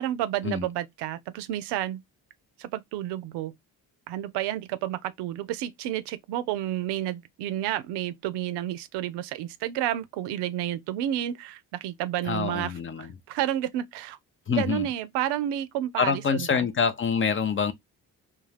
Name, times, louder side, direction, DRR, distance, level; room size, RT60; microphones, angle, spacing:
voice 1, 0.0-2.0 2.6-3.5 4.1-12.7 13.0-14.2 14.5-16.7, right 12 dB, 75° right, 0.5 m, -30 dB
voice 2, 12.2-13.1 14.5-14.9 16.0-17.7, left 6 dB, 30° left, 0.5 m, -26 dB
2.3 x 2.3 x 3.3 m
hypercardioid pair, 50°, 41 cm